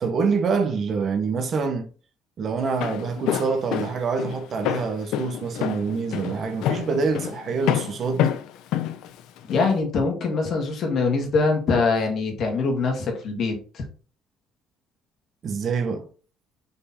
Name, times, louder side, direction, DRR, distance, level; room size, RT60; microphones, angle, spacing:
voice 1, 0.0-1.9 2.4-8.4 15.4-16.1, right 5 dB, 40° right, 0.9 m, -26 dB
Walk footsteps, 2.6-9.7, left 11 dB, 75° left, 0.6 m, -28 dB
voice 2, 9.5-13.8, left 4 dB, 45° left, 2.0 m, -23 dB
5.7 x 4.4 x 4.2 m
cardioid pair, 150°, 0 cm